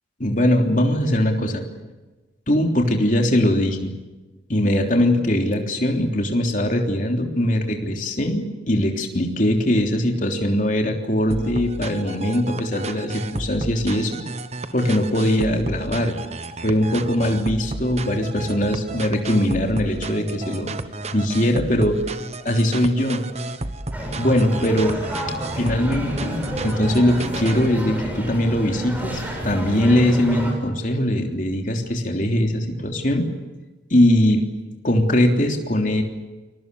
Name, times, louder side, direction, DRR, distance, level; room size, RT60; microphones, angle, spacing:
voice 1, 0.2-1.6 2.5-3.9 4.5-14.2 14.7-16.2 16.6-20.7 21.1-22.0 22.4-23.2 24.2-25.0 25.5-33.3 33.9-34.5 34.8-36.0, left 1 dB, 45° left, 2 dB, 3.4 m, -21 dB
sound 1, 11.3-27.7, right 2 dB, 35° right, 1.2 m, -32 dB
sound 2, 23.9-30.5, equal, 10° right, 6.7 m, -30 dB
28.5 x 21.5 x 7.0 m, 1.2 s
head